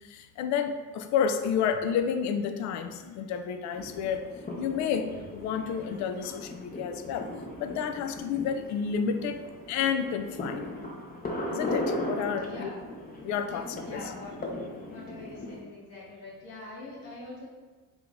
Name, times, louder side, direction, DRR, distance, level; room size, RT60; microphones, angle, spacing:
voice 1, 0.0-4.3 4.6-7.3 7.6-9.4 9.7-10.7 11.5-12.7 13.2-14.0, left 7 dB, 40° left, 8 dB, 0.4 m, -30 dB
sound 1, 3.7-15.6, left 1 dB, 20° left, 0.7 m, -38 dB
voice 2, 12.4-12.7 13.5-14.3 14.8-17.5, left 2 dB, 55° left, -4 dB, 1.4 m, -43 dB
3.8 x 2.8 x 3.6 m, 1.4 s
figure-of-eight pair, 50°, 47 cm